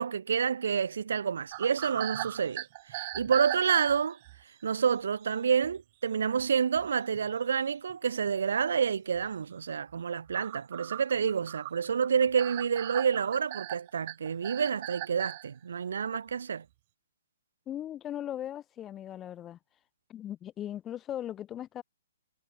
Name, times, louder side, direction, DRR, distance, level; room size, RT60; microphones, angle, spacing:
voice 1, 0.0-4.2 4.6-16.6, right 7 dB, 75° right, 1.1 m, -29 dB
sound 1, 1.5-4.4 5.2-5.3 5.6-5.8 6.4-6.5 6.8-7.3 7.9-8.0 8.3-8.4 9.1-9.3 9.7-15.5, right 20 dB, 40° right, 4.7 m, -39 dB
voice 2, 17.7-19.6 20.1-21.8, left 11 dB, 20° left, 6.4 m, -38 dB
hypercardioid pair, 135°, 0 cm